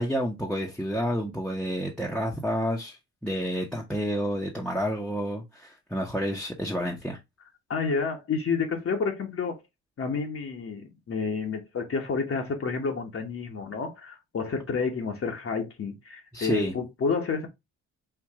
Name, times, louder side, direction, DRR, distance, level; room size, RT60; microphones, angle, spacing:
voice 1, 0.0-7.2 16.3-16.7, equal, 5° left, 1.0 m, -29 dB
voice 2, 7.7-9.6 10.0-17.5, left 5 dB, 45° left, 1.2 m, -30 dB
4.7 x 2.5 x 3.6 m
cardioid pair, 90°, 30 cm